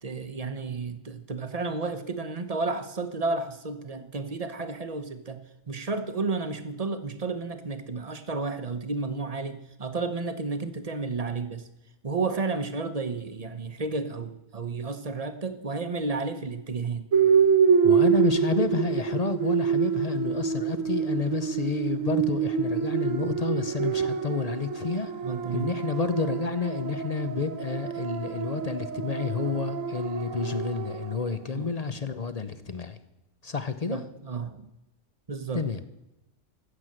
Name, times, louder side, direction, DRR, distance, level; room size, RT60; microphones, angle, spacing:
voice 1, 0.0-5.4 5.7-11.7 12.0-17.1 25.2-25.7 31.5-31.7 33.9-34.7 35.3-35.6, right 3 dB, 30° right, 9 dB, 0.9 m, -32 dB
sound 1, 17.1-31.3, right 7 dB, 60° right, 1.6 m, -26 dB
voice 2, 17.8-25.1 25.5-33.0 33.4-34.0 35.5-35.8, left 4 dB, 40° left, 11 dB, 0.5 m, -30 dB
15.0 x 8.0 x 7.6 m, 0.94 s
omnidirectional pair, 1.6 m